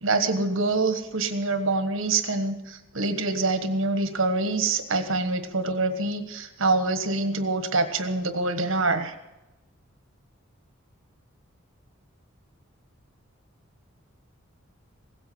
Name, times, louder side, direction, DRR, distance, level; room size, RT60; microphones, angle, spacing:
voice 1, 0.0-9.1, right 3 dB, 70° right, 9 dB, 1.4 m, -25 dB
16.5 x 8.2 x 7.9 m, 0.99 s
head